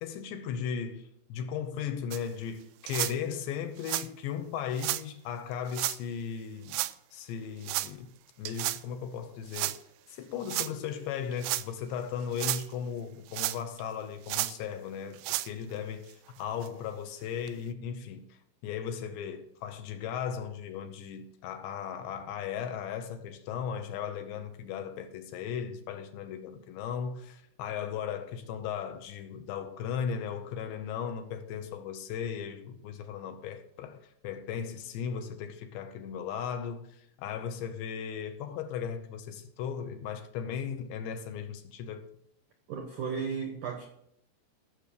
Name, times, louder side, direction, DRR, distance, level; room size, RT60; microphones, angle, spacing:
voice 1, 0.0-6.8 7.1-8.1 8.4-9.8 10.1-42.1, left 7 dB, 75° left, 2.9 m, -37 dB
sound 1, 2.1-2.2 2.9-3.1 3.8-4.1 4.8-5.0 5.7-6.0 6.7-6.9 7.6-7.9 8.5-8.8 9.5-9.8 10.5-10.7 11.3-11.7 12.2-12.7 13.3-13.8 14.3-14.5 15.1-15.5 16.1-16.2 16.6-16.7 17.5-17.6, right 18 dB, 90° right, 3.1 m, -32 dB
voice 2, 42.7-43.8, right 6 dB, 75° right, 1.8 m, -34 dB
15.5 x 6.6 x 6.7 m
omnidirectional pair, 5.5 m